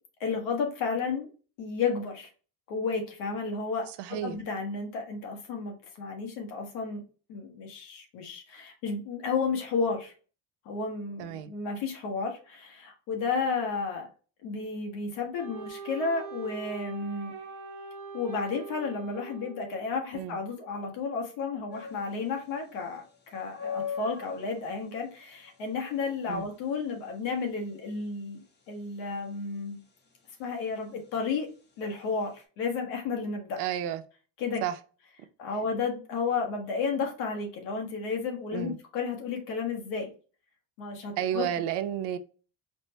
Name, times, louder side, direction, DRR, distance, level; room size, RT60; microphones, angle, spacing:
voice 1, 0.2-1.3 1.6-2.3 2.7-7.0 7.3-10.1 10.6-14.1 14.4-17.3 18.1-23.0 23.3-28.4 28.7-29.8 30.4-31.5 31.8-33.6 34.4-34.6 35.4-40.1 40.8-41.5, left 4 dB, 85° left, 1.3 m, -32 dB
voice 2, 4.0-4.4 11.2-11.5 20.1-20.4 26.3-26.5 33.6-34.0 34.6-34.7 38.5-38.8 41.2-42.2, right 10 dB, 65° right, 0.6 m, -31 dB
Wind instrument woodwind instrument, 15.4-20.0, right 5 dB, 40° right, 1.0 m, -42 dB
sound 1, 21.7-32.4, left 6 dB, 25° left, 0.7 m, -43 dB
4.2 x 2.1 x 2.7 m
supercardioid pair, 90°, 44 cm